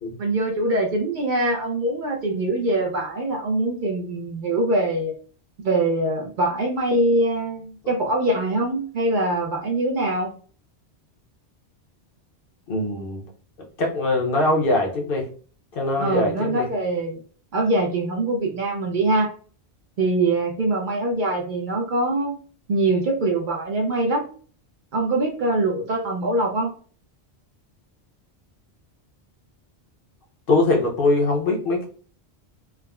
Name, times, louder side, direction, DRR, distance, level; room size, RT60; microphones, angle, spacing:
voice 1, 0.2-5.1 5.6-10.3 16.0-17.2 17.5-19.3 20.0-22.3 22.7-24.3 24.9-26.7, right 2 dB, 60° right, 0 dB, 0.6 m, -23 dB
voice 2, 12.7-13.2 13.8-15.3 15.7-16.7 30.5-31.9, left 2 dB, 60° left, 1 dB, 0.8 m, -22 dB
3.4 x 2.0 x 2.2 m, 0.42 s
omnidirectional pair, 1.1 m